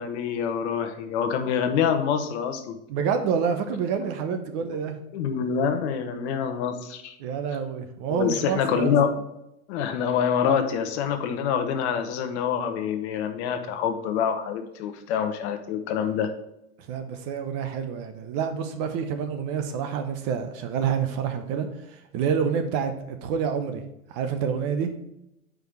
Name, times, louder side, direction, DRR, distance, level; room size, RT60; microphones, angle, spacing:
voice 1, 0.0-2.7 5.1-7.2 8.1-9.1 9.7-16.3, left 7 dB, 50° left, 8 dB, 1.0 m, -26 dB
voice 2, 2.9-5.0 7.2-8.9 16.8-23.8 24.1-24.9, right 7 dB, 35° right, 7 dB, 0.8 m, -28 dB
5.1 x 4.8 x 5.9 m, 0.82 s
hypercardioid pair, 130°, 44 cm